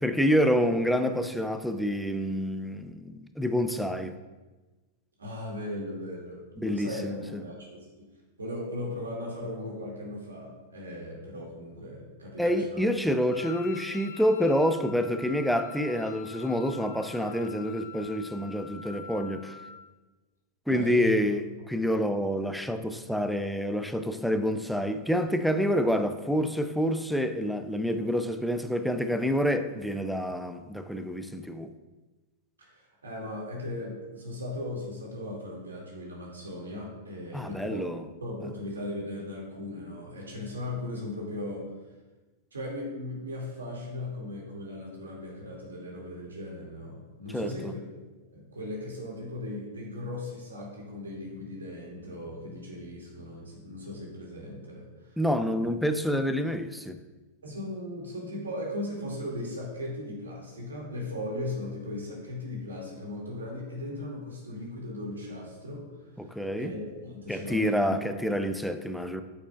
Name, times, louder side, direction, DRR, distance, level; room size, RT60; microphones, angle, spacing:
voice 1, 0.0-4.2 6.6-7.2 12.4-19.5 20.7-31.7 37.3-38.0 47.3-47.7 55.2-57.0 66.2-66.8 67.3-69.2, equal, ahead, 0.5 m, -28 dB
voice 2, 5.2-8.1 8.4-12.8 20.7-21.1 32.6-37.8 38.2-41.7 42.5-47.8 48.3-55.2 57.4-65.9 66.2-66.3 66.6-68.0, left 1 dB, 85° right, 2.2 m, -37 dB
Wind instrument woodwind instrument, 13.3-19.9, left 8 dB, 65° left, 0.5 m, -46 dB
8.6 x 7.0 x 2.4 m
hypercardioid pair, 100°, 0 cm